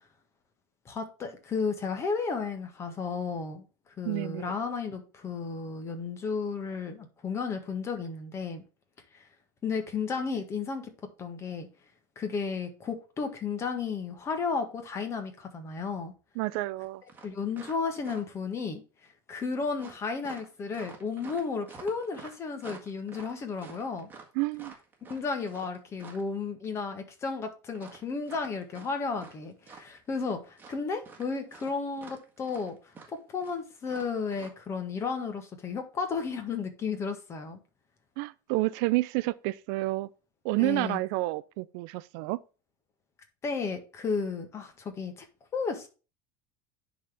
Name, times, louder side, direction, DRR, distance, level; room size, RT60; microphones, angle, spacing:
voice 1, 0.8-3.6 4.0-8.6 9.1-9.3 9.6-10.9 11.2-11.7 12.1-16.1 17.2-18.8 19.3-24.1 25.1-32.8 33.1-37.6 40.6-41.0 43.4-45.2 45.5-45.9, left 5 dB, 25° left, 1.5 m, -33 dB
voice 2, 4.1-4.5 16.4-17.0 24.4-24.7 38.2-40.1 40.4-42.4, right 20 dB, 65° right, 0.4 m, -29 dB
sound 1, 16.8-16.9 17.1-18.5 19.8-26.3 27.7-29.4 29.6-30.3 30.6-34.5, right 5 dB, 15° right, 1.6 m, -49 dB
10.0 x 4.2 x 3.5 m
cardioid pair, 150°, 11 cm